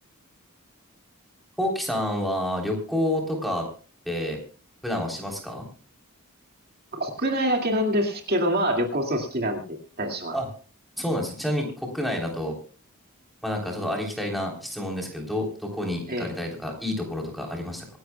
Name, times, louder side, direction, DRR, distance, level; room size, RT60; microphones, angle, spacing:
voice 1, 1.6-3.6 4.1-4.4 4.8-5.7 10.3-10.5 11.0-12.6 13.4-17.9, left 1 dB, ahead, 0 dB, 3.5 m, -29 dB
voice 2, 6.9-9.6 10.0-10.4 16.1-16.3, equal, 45° right, 3 dB, 2.2 m, -25 dB
26.0 x 11.5 x 2.3 m, 0.38 s
head